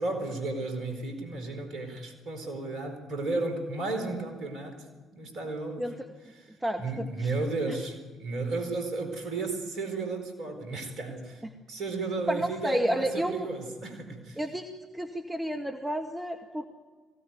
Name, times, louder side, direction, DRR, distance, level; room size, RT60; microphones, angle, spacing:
voice 1, 0.0-4.8 5.1-5.9 6.3-6.5 6.8-11.4 11.7-14.4, right 3 dB, 60° right, 6 dB, 4.4 m, -33 dB
voice 2, 6.6-7.3 7.7-7.8 11.4-11.5 12.3-13.5 14.4-14.7 14.9-16.6, equal, 10° right, 3 dB, 1.8 m, -31 dB
21.5 x 17.0 x 9.4 m, 1.4 s
figure-of-eight pair, 45°, 0 cm